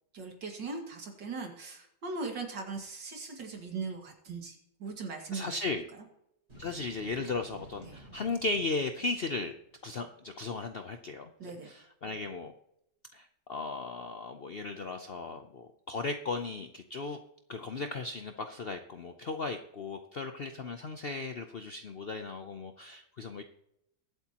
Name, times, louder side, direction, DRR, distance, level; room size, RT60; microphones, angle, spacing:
voice 1, 0.1-5.6 7.8-8.0 11.4-11.7, right 4 dB, 90° right, 2 dB, 2.8 m, -39 dB
voice 2, 5.3-5.9 6.5-9.5 9.8-11.3 11.6-12.5 13.1-17.2 17.5-23.4, left 3 dB, 60° left, 6 dB, 0.6 m, -36 dB
sound 1, 6.5-9.9, right 1 dB, 35° right, 6.0 m, -54 dB
22.0 x 8.2 x 2.9 m, 0.79 s
omnidirectional pair, 1.9 m